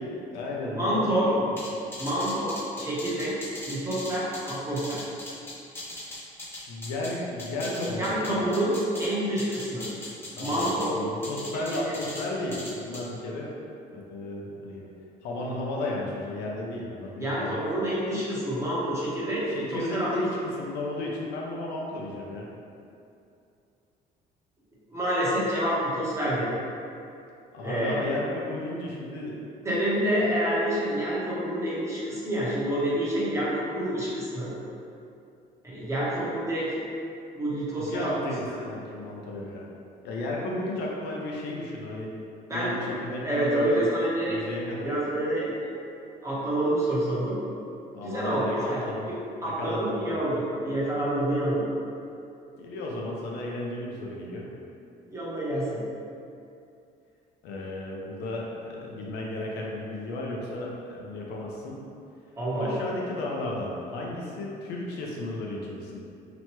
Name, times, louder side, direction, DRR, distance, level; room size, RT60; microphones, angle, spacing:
voice 1, 0.0-1.7 6.7-8.5 10.4-13.5 13.9-14.8 15.2-17.7 19.5-22.5 27.5-29.4 37.8-39.7 40.0-42.1 42.5-43.8 44.3-44.9 47.9-49.1 49.4-50.2 52.6-54.5 57.4-61.8 62.6-66.0, left 1 dB, 80° left, -2 dB, 0.6 m, -34 dB
voice 2, 0.7-1.3 2.0-3.3 3.7-5.0 8.0-9.8 10.4-10.9 11.7-11.9 17.2-19.4 19.7-20.1 24.9-26.5 27.6-28.0 29.6-34.5 35.6-36.7 37.3-38.1 42.5-42.8 43.2-44.4 44.8-45.8 46.2-47.4 48.0-48.8 49.4-51.6 55.1-55.8 62.4-62.7, right 1 dB, 15° right, -8 dB, 0.9 m, -27 dB
sound 1, 1.6-7.1 7.4-9.1 9.4-10.9 11.2-12.2 12.5-13.0, left 1 dB, 15° left, 0.7 m, -39 dB
2.9 x 2.2 x 2.9 m, 2.6 s
cardioid pair, 110°, 17 cm